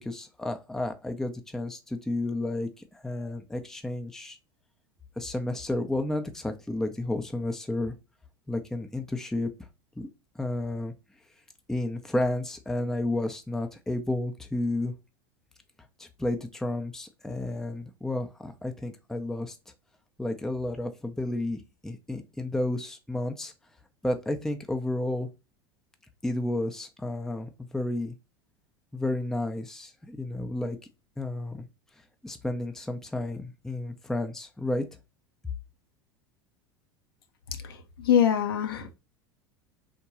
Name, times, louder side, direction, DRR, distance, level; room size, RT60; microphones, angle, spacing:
voice 1, 0.0-4.4 5.2-7.9 8.5-9.5 10.0-10.1 10.4-10.9 11.7-14.9 16.0-19.6 20.2-23.5 24.0-25.3 26.2-28.2 28.9-30.8 31.2-31.7 32.2-34.8, left 1 dB, 5° left, 0.5 m, -31 dB
voice 2, 37.5-38.9, left 9 dB, 65° left, 0.6 m, -25 dB
3.5 x 2.2 x 2.9 m
figure-of-eight pair, 75°, 13 cm